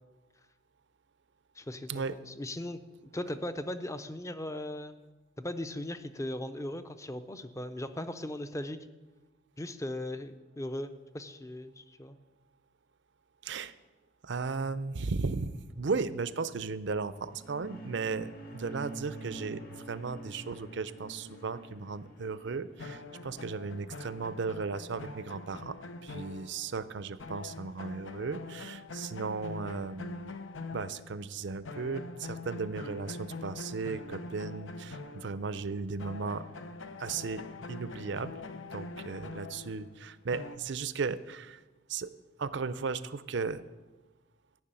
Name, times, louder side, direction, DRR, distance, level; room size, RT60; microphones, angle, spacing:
voice 1, 1.6-2.8 3.1-5.0 5.4-8.8 9.6-12.2, left 1 dB, 15° left, 10 dB, 0.6 m, -38 dB
voice 2, 13.4-13.7 14.2-19.6 19.9-25.8 26.0-30.3 30.7-36.4 37.0-37.4 37.7-38.3 38.7-41.6 41.9-42.1 42.4-43.6, right 4 dB, 65° right, 15 dB, 0.6 m, -36 dB
sound 1, 17.1-23.8, right 2 dB, 55° left, 2.0 m, -47 dB
sound 2, 22.8-26.9 27.2-31.3 31.6-35.7 36.0-40.6, left 3 dB, 85° left, 0.9 m, -44 dB
14.0 x 6.3 x 9.0 m, 1.2 s
head